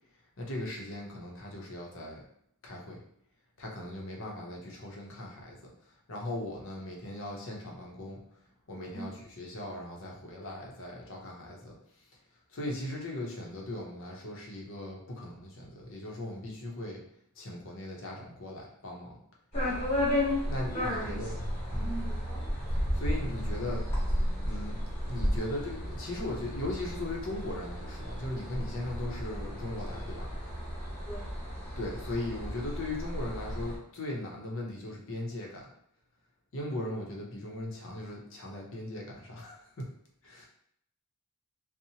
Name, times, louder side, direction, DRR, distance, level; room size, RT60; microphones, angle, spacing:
voice 1, 0.4-2.2 2.6-3.0 3.6-5.7 6.1-8.2 8.7-9.1 9.4-11.8 12.5-17.0 17.4-19.2 20.4-21.4 21.7-22.0 22.9-23.9 24.4-24.8 25.1-30.3 31.8-35.7 36.5-39.8 40.2-40.5, left 1 dB, 60° left, -1 dB, 0.6 m, -38 dB
sound 1, 19.5-33.8, equal, 30° left, 1.1 m, -33 dB
voice 2, 20.7-21.2 21.8-22.5 31.0-31.3, right 2 dB, 5° left, -7 dB, 0.8 m, -42 dB
2.8 x 2.0 x 2.7 m, 0.70 s
head